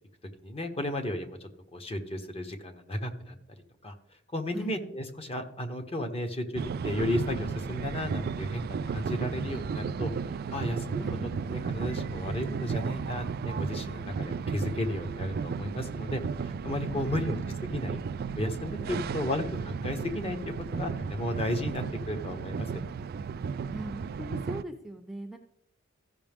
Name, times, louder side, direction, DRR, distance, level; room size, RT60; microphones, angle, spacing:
voice 1, 0.4-3.3 3.8-3.9 4.3-10.1 10.5-11.0 11.5-17.4 17.7-18.0 18.4-22.7, left 1 dB, 30° left, 6 dB, 1.1 m, -34 dB
sound 1, 6.6-24.6, right 5 dB, 50° right, 0.3 m, -34 dB
voice 2, 16.9-17.9 18.8-19.0 21.7-21.8 23.7-25.4, right 1 dB, ahead, 3 dB, 0.6 m, -41 dB
15.0 x 5.7 x 3.5 m, 0.73 s
head